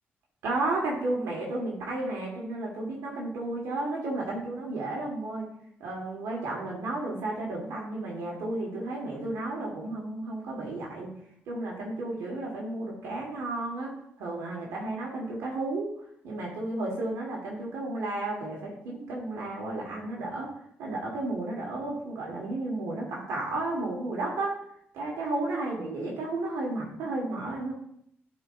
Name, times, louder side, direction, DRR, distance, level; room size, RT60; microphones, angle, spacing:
voice 1, 0.4-5.5 5.8-11.1 11.5-15.9 16.2-20.5 20.8-24.6 24.9-27.7, right 2 dB, 90° right, -3 dB, 1.7 m, -33 dB
11.0 x 4.5 x 2.6 m, 0.70 s
cardioid pair, 70°, 5 cm